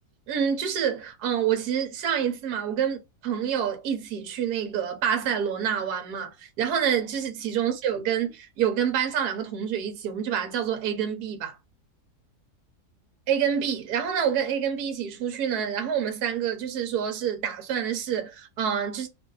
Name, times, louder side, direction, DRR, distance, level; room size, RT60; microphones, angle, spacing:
voice 1, 0.3-11.6 13.3-19.1, right 8 dB, 75° right, 1.3 m, -27 dB
2.9 x 2.6 x 3.9 m
omnidirectional pair, 1.7 m